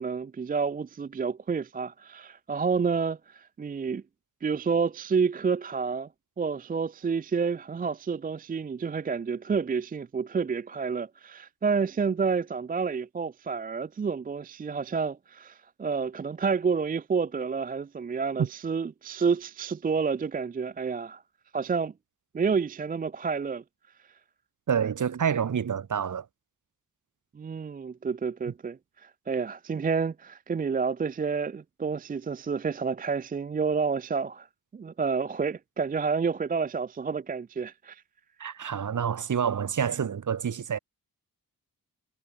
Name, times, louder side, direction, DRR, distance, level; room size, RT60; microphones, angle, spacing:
voice 1, 0.0-4.0 4.4-6.1 6.4-21.2 21.5-21.9 22.3-23.6 27.3-34.5 34.7-38.0, right 5 dB, 25° right, 0.4 m, -29 dB
voice 2, 24.7-26.3 38.4-40.8, right 7 dB, 55° right, 3.0 m, -28 dB
wide cardioid pair, 165°, 36 cm